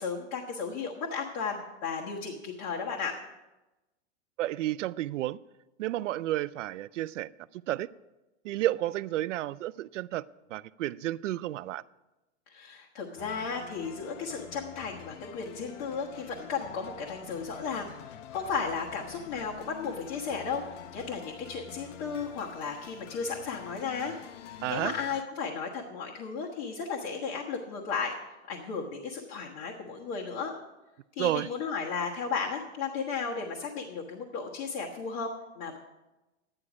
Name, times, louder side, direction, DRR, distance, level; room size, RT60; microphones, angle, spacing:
voice 1, 0.0-3.2 12.5-24.1 24.7-28.1 28.5-30.5 31.1-35.8, left 5 dB, 40° left, -3 dB, 1.4 m, -34 dB
voice 2, 4.4-5.4 5.8-7.9 8.4-10.2 10.5-11.8 24.6-24.9 31.2-31.5, right 15 dB, 80° right, 18 dB, 0.5 m, -31 dB
sound 1, 13.2-25.2, left 10 dB, 75° left, 0.9 m, -47 dB
11.5 x 9.9 x 4.9 m, 1.0 s
supercardioid pair, 165°, 37 cm